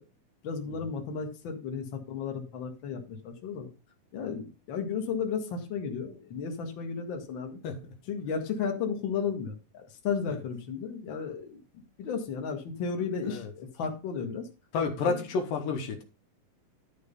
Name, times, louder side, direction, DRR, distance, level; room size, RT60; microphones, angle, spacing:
voice 1, 0.4-3.7 4.1-7.6 8.1-14.5 15.1-15.2, left 6 dB, 40° left, 2.1 m, -34 dB
voice 2, 7.6-7.9 10.3-10.4 13.3-13.5 14.7-16.0, left 4 dB, 90° left, 3.3 m, -31 dB
12.0 x 4.7 x 5.4 m
omnidirectional pair, 3.9 m